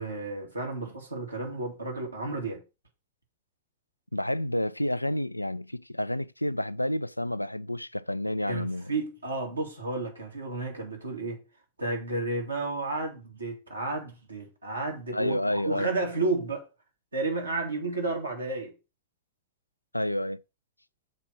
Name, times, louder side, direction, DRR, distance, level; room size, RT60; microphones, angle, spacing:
voice 1, 0.0-2.6 8.5-11.4 11.8-16.6 17.1-18.7, right 3 dB, 80° right, 2.2 m, -32 dB
voice 2, 4.1-8.9 15.1-15.9 19.9-20.4, left 1 dB, 85° left, 0.3 m, -29 dB
6.4 x 4.5 x 6.0 m
figure-of-eight pair, 90°, 0 cm